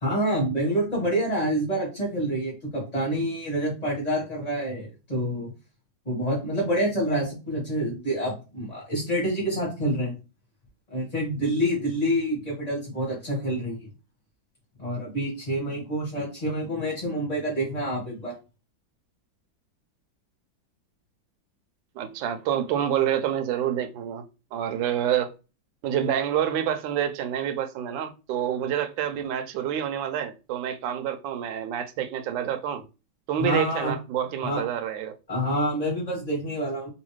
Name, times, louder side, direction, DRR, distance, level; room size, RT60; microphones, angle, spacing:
voice 1, 0.0-5.5 6.0-10.1 10.9-13.9 14.8-18.3 33.4-33.9 34.4-34.6 35.3-36.9, equal, 25° left, 1.0 m, -27 dB
voice 2, 22.0-24.2 24.5-25.3 25.8-32.8 33.3-35.1, right 10 dB, 75° right, 1.2 m, -27 dB
3.2 x 2.7 x 3.1 m
omnidirectional pair, 2.1 m